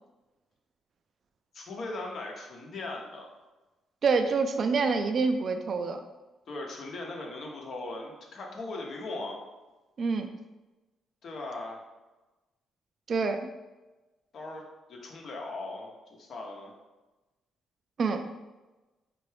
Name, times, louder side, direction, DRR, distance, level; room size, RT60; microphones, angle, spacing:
voice 1, 1.5-3.3 6.5-9.4 11.2-11.8 14.3-14.6 14.9-16.7, left 2 dB, 60° left, 0 dB, 0.9 m, -39 dB
voice 2, 4.0-6.0 10.0-10.3 13.1-13.4 18.0-18.2, right 4 dB, 50° right, 6 dB, 0.3 m, -26 dB
4.5 x 2.5 x 3.3 m, 1.1 s
cardioid pair, 90°, 0 cm